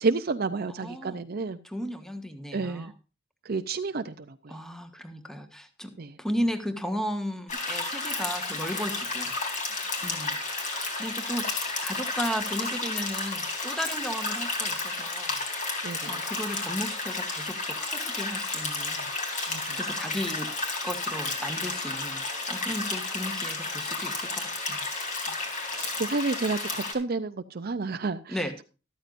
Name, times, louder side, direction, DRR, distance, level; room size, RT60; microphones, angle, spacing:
voice 1, 0.0-1.6 2.5-2.9 3.5-4.1 6.0-6.1 15.8-16.2 19.5-19.8 25.7-28.4, right 3 dB, 50° right, 8 dB, 0.6 m, -30 dB
voice 2, 0.7-1.2 1.6-2.9 4.5-9.3 10.0-15.4 16.0-19.1 19.7-20.5 20.8-24.9 28.3-28.5, equal, 5° left, 7 dB, 1.4 m, -35 dB
sound 1, 7.5-26.9, left 3 dB, 40° left, 3.1 m, -32 dB
sound 2, 9.4-11.1 11.5-11.7 12.0-12.5 12.9-13.2 14.5-14.6, left 9 dB, 70° left, 1.5 m, -45 dB
13.5 x 13.0 x 2.6 m, 0.33 s
head